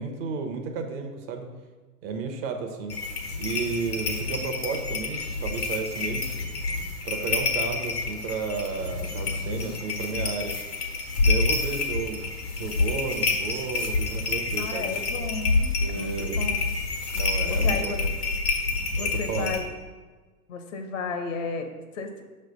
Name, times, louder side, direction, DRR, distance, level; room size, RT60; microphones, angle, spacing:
voice 1, 0.0-1.5 2.0-2.9 3.4-6.3 7.0-10.5 11.2-12.2 12.6-14.9 15.8-16.4 17.1-18.1 19.0-19.5, right 5 dB, 40° right, 4 dB, 0.9 m, -32 dB
sound 1, 2.9-19.6, left 3 dB, 80° left, 1.3 m, -28 dB
voice 2, 14.6-16.6 17.5-18.0 19.0-19.7 20.5-22.2, left 4 dB, 55° left, 6 dB, 0.9 m, -34 dB
6.0 x 3.3 x 5.3 m, 1.4 s
figure-of-eight pair, 100°, 46 cm